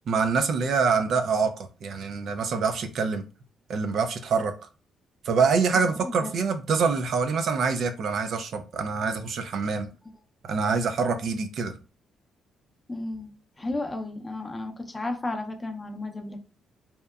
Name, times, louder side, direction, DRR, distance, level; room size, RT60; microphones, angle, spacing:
voice 1, 0.1-3.2 3.7-4.5 5.2-9.9 10.4-11.8, right 5 dB, 65° right, 0.4 m, -25 dB
voice 2, 5.7-6.3 12.9-13.3 13.6-16.4, left 2 dB, 20° left, 0.5 m, -33 dB
2.8 x 2.1 x 2.3 m
cardioid pair, 90°, 0 cm